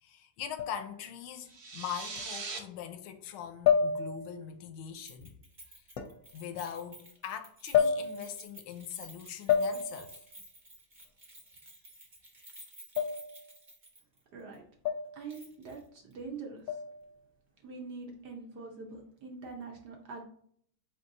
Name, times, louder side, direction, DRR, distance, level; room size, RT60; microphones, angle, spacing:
voice 1, 0.0-5.3 6.3-10.2, left 9 dB, 85° left, 1.4 m, -42 dB
glass hit bowls, 0.6-1.0 2.2-2.3 3.6-4.4 6.0-6.2 7.7-8.4 9.5-10.2 13.0-13.5 14.8-15.3 16.7-17.1, left 7 dB, 65° left, 1.3 m, -29 dB
sound 1, 1.4-2.6, right 4 dB, 85° right, 1.9 m, -40 dB
Keys jangling, 5.1-14.2 14.5-14.6 15.3-15.8 16.1-16.2, right 1 dB, 35° right, 0.9 m, -53 dB
voice 2, 14.3-14.6 15.1-16.6 17.6-20.2, right 4 dB, 65° right, 1.1 m, -44 dB
4.5 x 3.9 x 2.6 m
omnidirectional pair, 2.3 m